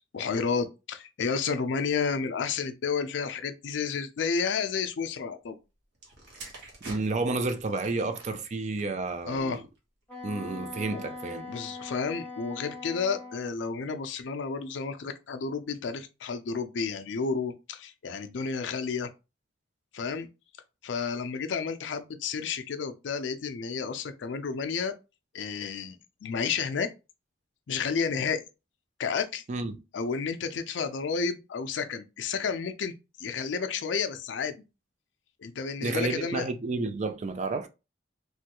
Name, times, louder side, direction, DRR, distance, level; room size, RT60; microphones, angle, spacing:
voice 1, 0.1-5.6 9.3-9.6 10.9-11.0 11.5-19.1 19.9-20.3 20.8-24.9 25.3-26.0 26.2-26.9 27.7-28.4 29.0-29.4 29.9-32.9 33.2-34.5 35.4-36.4, left 5 dB, 65° left, 0.4 m, -31 dB
sound 1, 5.9-9.8 10.6-10.8, right 2 dB, 60° right, 1.1 m, -48 dB
voice 2, 6.8-9.6 10.2-11.5 29.5-29.8 35.8-37.7, right 3 dB, 40° right, 0.4 m, -31 dB
Wind instrument woodwind instrument, 10.1-13.5, left 2 dB, 10° left, 1.0 m, -41 dB
3.2 x 2.2 x 2.9 m
head